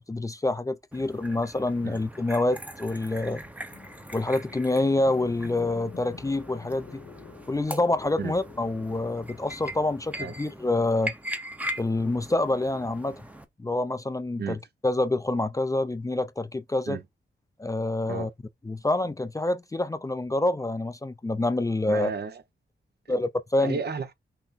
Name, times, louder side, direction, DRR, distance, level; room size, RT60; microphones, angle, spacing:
voice 1, 0.0-3.4 4.1-7.0 7.5-11.1 11.8-13.2 13.6-17.0 17.6-18.3 18.6-22.1 23.1-23.8, left 2 dB, 15° left, 0.5 m, -27 dB
sound 1, 0.9-13.4, equal, 5° right, 0.8 m, -40 dB
sound 2, 3.7-9.3, left 7 dB, 70° left, 1.2 m, -48 dB
voice 2, 21.9-22.4 23.6-24.1, right 5 dB, 55° right, 0.8 m, -32 dB
5.9 x 2.1 x 4.0 m
cardioid pair, 80°, 20 cm